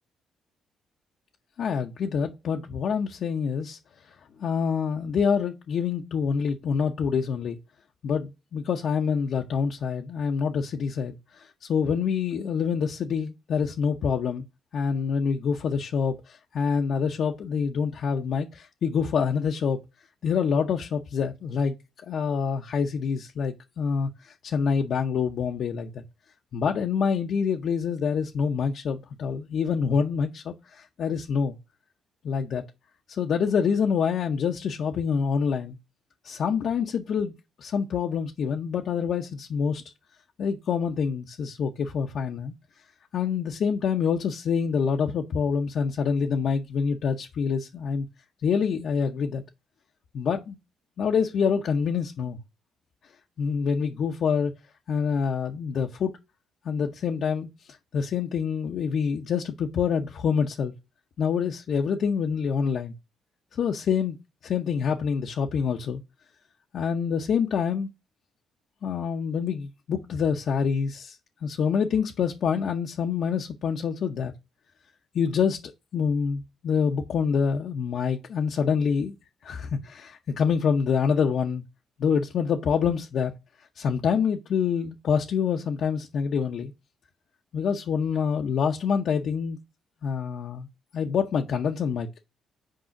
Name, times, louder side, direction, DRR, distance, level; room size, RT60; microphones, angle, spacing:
voice 1, 1.6-3.8 4.4-7.6 8.0-14.4 14.7-19.8 20.2-21.8 22.1-26.0 26.5-31.6 32.2-32.6 33.1-35.8 36.2-37.3 37.6-39.8 40.4-42.5 43.1-48.1 48.4-49.4 50.1-50.6 51.0-52.4 53.4-54.5 54.9-56.1 56.6-57.5 57.9-60.7 61.2-62.9 63.5-64.2 64.4-66.0 66.7-67.9 68.8-71.2 71.4-74.3 75.1-79.1 79.4-81.6 82.0-83.3 83.8-86.7 87.5-89.6 90.0-90.7 90.9-92.1, left 6 dB, 65° left, 0.8 m, -26 dB
6.4 x 4.8 x 5.9 m
cardioid pair, 90°, 0 cm